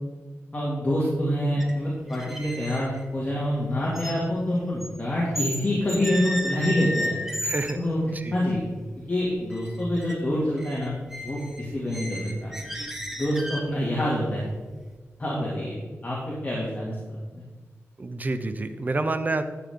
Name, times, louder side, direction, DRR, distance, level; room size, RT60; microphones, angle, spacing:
voice 1, 0.5-7.2 7.8-8.0 8.3-8.6 9.1-11.0 11.2-12.5 13.2-14.4 15.2-15.7 16.0-17.0 17.3-17.4, left 1 dB, 30° left, -6 dB, 2.4 m, -26 dB
sound 1, 1.6-1.8 2.1-5.6 5.9-7.8 8.4-8.5 8.9-9.2 9.5-10.2 10.4-13.8, equal, 5° right, 1.2 m, -34 dB
voice 2, 7.4-7.8 8.1-8.4 18.0-19.4, right 2 dB, 35° right, 9 dB, 0.8 m, -28 dB
12.5 x 7.4 x 3.7 m, 1.4 s
wide cardioid pair, 110°, 5 cm